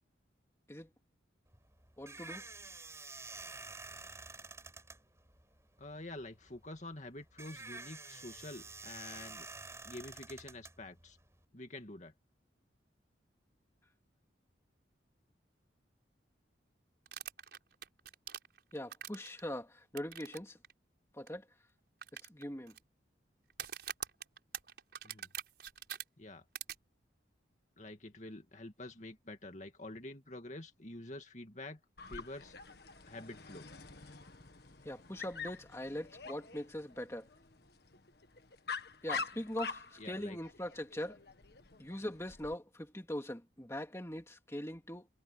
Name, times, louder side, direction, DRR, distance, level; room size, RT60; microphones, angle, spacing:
sound 1, 1.5-11.4, right 3 dB, 15° right, 6.7 m, -49 dB
voice 1, 2.0-2.5 18.7-20.6 21.1-21.5 22.1-22.7 34.8-37.3 39.0-41.2 41.8-45.1, left 1 dB, 15° left, 2.4 m, -42 dB
voice 2, 5.8-9.5 9.8-11.2 11.5-12.1 25.0-25.3 26.2-26.4 27.8-31.8 32.1-32.5 33.1-33.7 40.0-40.4, left 2 dB, 40° left, 2.3 m, -47 dB
sound 2, 17.1-19.4 20.0-20.4 20.6-20.7 21.3-21.4 22.0-22.8 23.5-26.0 26.5-26.7, right 9 dB, 60° right, 6.0 m, -43 dB
Dog, 32.0-42.5, left 5 dB, 55° left, 1.6 m, -46 dB
head